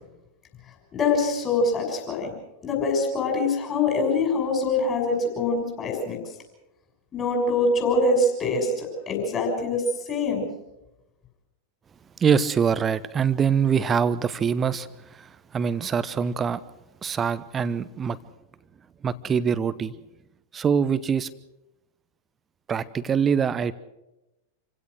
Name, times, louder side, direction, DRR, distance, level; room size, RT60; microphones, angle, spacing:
voice 1, 0.9-2.3 2.6-6.2 7.1-10.5, left 2 dB, 30° left, 1 dB, 6.4 m, -24 dB
voice 2, 12.2-16.6 17.0-18.2 19.0-19.9 20.5-21.3 22.7-23.7, right 7 dB, 20° right, 16 dB, 0.9 m, -24 dB
27.5 x 16.5 x 6.4 m, 0.92 s
figure-of-eight pair, 90°, 0 cm